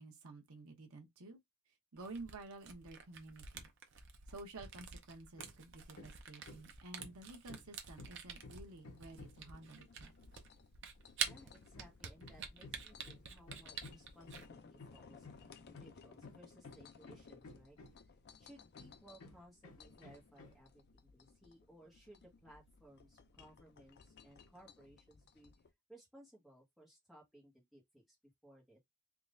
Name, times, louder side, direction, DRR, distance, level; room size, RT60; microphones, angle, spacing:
voice 1, 0.0-1.4 1.9-3.7 4.3-10.1, right 2 dB, 75° right, 1.0 m, -52 dB
Camera, 2.0-14.5, right 7 dB, 55° right, 0.7 m, -47 dB
Hammer, 5.4-5.7 5.9-9.5 11.3-18.2 18.7-20.7, left 3 dB, 80° left, 0.9 m, -56 dB
sound 1, 6.6-25.7, left 5 dB, 45° left, 0.4 m, -61 dB
voice 2, 11.3-18.0 18.4-25.5 25.9-28.2 28.4-28.8, right 1 dB, ahead, 1.5 m, -61 dB
3.7 x 3.0 x 2.5 m
head